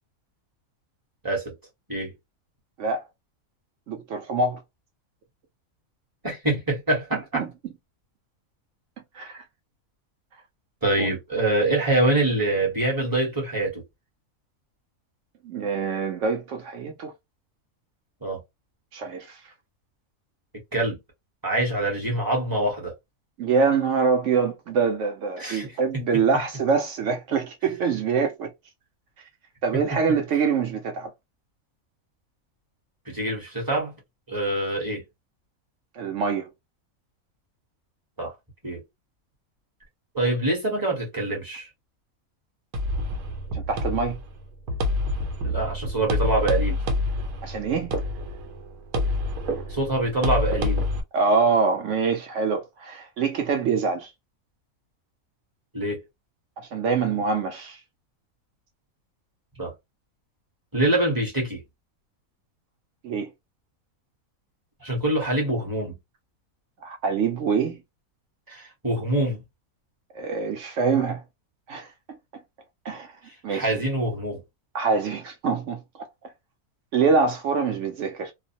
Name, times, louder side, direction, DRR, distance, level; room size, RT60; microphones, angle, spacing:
voice 1, 3.9-4.6 7.3-7.5 9.1-9.4 11.0-11.1 15.4-17.1 18.9-19.4 23.4-28.5 29.6-31.1 36.0-36.5 43.5-44.2 47.4-47.9 51.1-54.1 56.6-57.8 63.0-63.3 66.8-67.8 70.1-71.2 71.7-72.2 72.8-73.1 73.4-73.7 74.7-75.8 76.9-78.3, right 5 dB, 65° right, 0.9 m, -25 dB
voice 2, 6.2-7.5 10.8-13.8 18.2-18.4 20.7-21.0 21.4-22.9 25.4-25.7 25.9-26.0 29.7-29.8 33.1-33.9 34.3-35.0 38.2-38.3 38.6-38.8 40.1-41.7 45.4-46.8 49.7-50.8 55.7-56.0 59.6-59.7 60.7-61.6 64.8-65.9 68.5-69.4 73.5-74.4, right 1 dB, 20° right, 0.8 m, -25 dB
sound 1, 42.7-51.0, left 1 dB, 90° right, 1.1 m, -27 dB
2.5 x 2.0 x 2.7 m
omnidirectional pair, 1.5 m